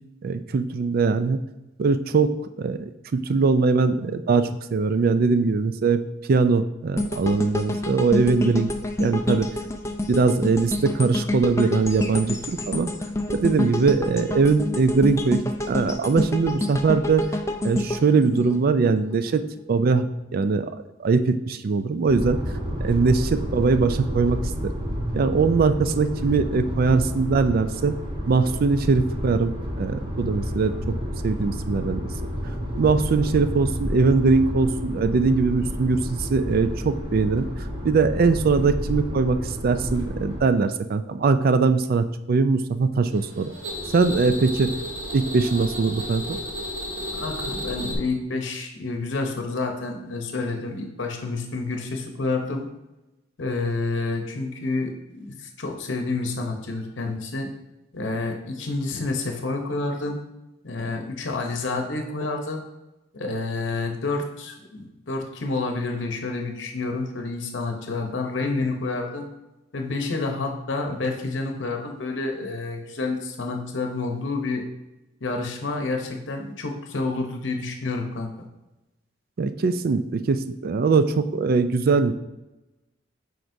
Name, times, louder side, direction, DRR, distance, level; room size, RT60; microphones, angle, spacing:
voice 1, 0.2-1.4 1.8-2.3 2.6-6.0 6.3-8.7 9.0-9.5 10.1-12.9 13.3-15.4 15.7-17.2 17.6-19.4 19.7-20.1 20.3-20.7 21.0-22.4 22.8-24.7 25.1-27.9 28.3-30.9 31.2-32.1 32.8-37.5 37.8-43.5 43.9-44.7 45.1-46.4 79.4-82.1, right 4 dB, 50° right, 11 dB, 0.4 m, -21 dB
sound 1, 7.0-19.1 19.6-19.7, left 1 dB, 15° left, 0.4 m, -28 dB
sound 2, 22.1-40.4, equal, 25° right, 1.0 m, -30 dB
sound 3, 43.1-47.9, equal, 80° right, 1.0 m, -33 dB
voice 2, 47.1-52.7 53.4-57.5 57.9-60.2 60.6-62.6 63.1-69.3 69.7-74.6 75.2-78.3, left 3 dB, 70° left, 3 dB, 0.8 m, -29 dB
7.7 x 5.0 x 2.7 m, 0.99 s
head